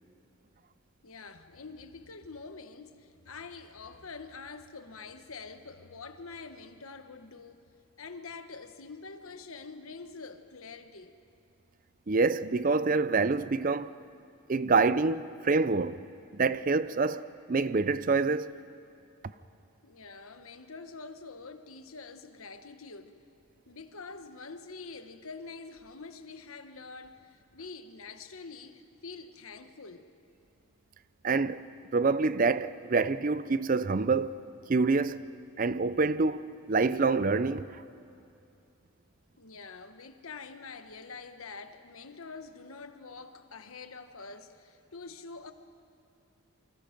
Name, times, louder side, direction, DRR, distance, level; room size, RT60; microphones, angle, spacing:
voice 1, 1.0-7.6 8.0-11.1 19.8-23.2 23.7-30.1 39.4-45.5, left 4 dB, 75° left, 1.2 m, -46 dB
voice 2, 12.1-13.9 14.5-16.0 16.3-18.5 31.2-31.7 31.9-34.4 34.7-35.3 35.6-37.8, right 4 dB, 40° right, 0.5 m, -26 dB
28.5 x 25.0 x 5.2 m
head